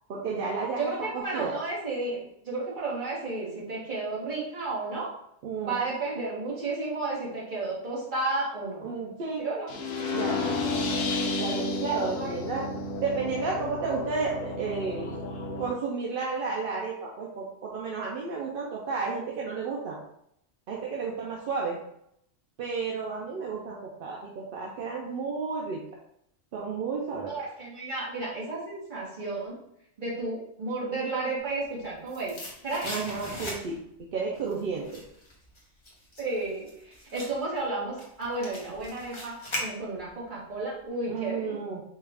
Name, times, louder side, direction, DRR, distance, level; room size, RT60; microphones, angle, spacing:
voice 1, 0.1-0.8 1.1-1.5 5.4-5.8 8.8-9.5 10.1-10.6 11.4-12.7 13.0-15.2 15.6-20.0 20.7-21.8 22.6-25.8 26.5-27.3 32.8-33.8 34.1-35.0 41.1-41.8, right 4 dB, 55° right, -2 dB, 0.7 m, -32 dB
voice 2, 0.8-5.1 5.6-8.8 9.4-9.7 12.2-12.3 27.3-29.5 30.0-32.4 32.6-33.0 36.2-41.6, right 3 dB, 40° right, -5 dB, 1.4 m, -32 dB
sound 1, 9.7-15.7, left 3 dB, 65° left, 0.8 m, -31 dB
sound 2, 31.6-34.0 34.3-40.2 40.5-40.6, left 1 dB, 25° left, 0.8 m, -39 dB
4.5 x 2.4 x 3.3 m, 0.74 s
omnidirectional pair, 1.3 m